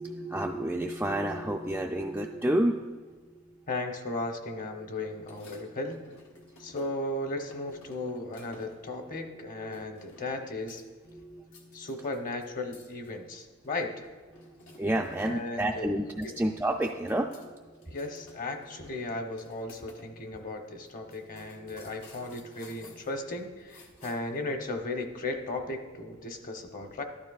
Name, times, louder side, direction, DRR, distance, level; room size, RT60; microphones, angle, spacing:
voice 1, 0.0-3.7 5.6-5.8 6.3-6.8 7.7-8.1 9.0-9.2 9.6-9.9 11.1-12.1 14.3-18.0 19.0-19.2 20.4-20.6 21.2-23.0 24.0-24.5, right 1 dB, 10° right, 0 dB, 0.3 m, -33 dB
voice 2, 3.7-6.0 6.6-10.8 11.7-14.0 15.2-15.9 16.2-16.3 17.9-27.0, left 2 dB, 40° left, 5 dB, 0.9 m, -36 dB
sound 1, 5.2-7.1 7.5-8.9 9.7-10.4 10.7-11.1 11.4-15.3 15.6-15.7 16.0-17.5 17.7-20.1 20.4-20.5 20.9-24.4, left 3 dB, 90° left, 1.2 m, -55 dB
13.0 x 11.5 x 2.4 m, 1.4 s
head